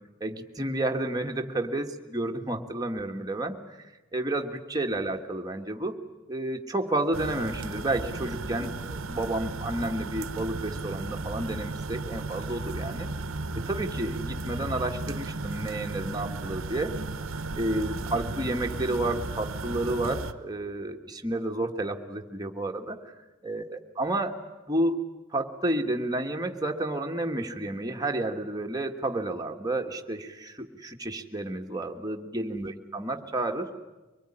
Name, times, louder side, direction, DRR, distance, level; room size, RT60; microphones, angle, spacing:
voice 1, 0.2-3.6 4.1-5.9 6.3-13.1 13.5-16.9 17.5-23.0 23.4-24.4 24.7-25.0 25.3-33.7, right 1 dB, 20° right, 3 dB, 1.6 m, -31 dB
sound 1, 7.1-20.3, right 3 dB, 70° right, 1.0 m, -35 dB
24.0 x 20.5 x 10.0 m, 1.2 s
head